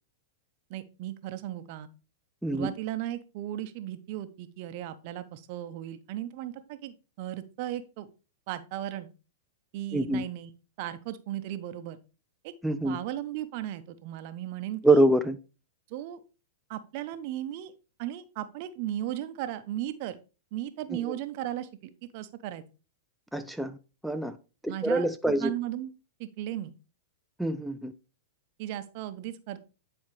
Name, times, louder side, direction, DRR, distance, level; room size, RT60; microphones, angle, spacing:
voice 1, 0.7-1.9 2.5-8.1 8.5-9.1 9.7-10.5 10.8-12.0 12.4-12.5 12.8-15.0 15.9-16.2 16.7-17.7 18.0-20.2 20.5-22.6 24.7-25.1 25.4-25.9 26.2-26.7 28.6-29.6, right 13 dB, 50° right, 0.8 m, -36 dB
voice 2, 9.9-10.2 12.6-13.0 14.8-15.4 20.9-21.1 23.3-23.8 24.0-24.4 24.6-25.5 27.4-27.9, right 1 dB, ahead, 0.4 m, -25 dB
9.6 x 4.4 x 3.1 m
hypercardioid pair, 120°, 0 cm